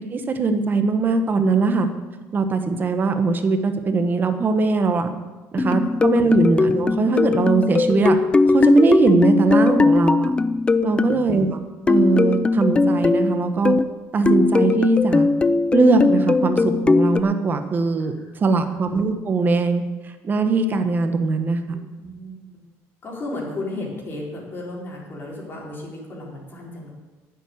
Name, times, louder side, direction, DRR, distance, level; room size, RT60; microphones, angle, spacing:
voice 1, 0.0-1.9 2.3-5.1 5.5-8.2 8.5-10.3 10.8-11.6 11.9-13.7 14.1-15.3 15.7-21.6, right 4 dB, 30° right, 7 dB, 1.3 m, -21 dB
sound 1, 5.6-11.2 11.9-14.0 14.3-17.2, left 3 dB, 15° left, 0.5 m, -19 dB
voice 2, 10.9-11.2 18.0-18.8 21.7-22.6 23.0-26.9, left 2 dB, 35° left, -2 dB, 4.3 m, -35 dB
10.0 x 7.8 x 9.7 m, 1.2 s
cardioid pair, 130°, 6 cm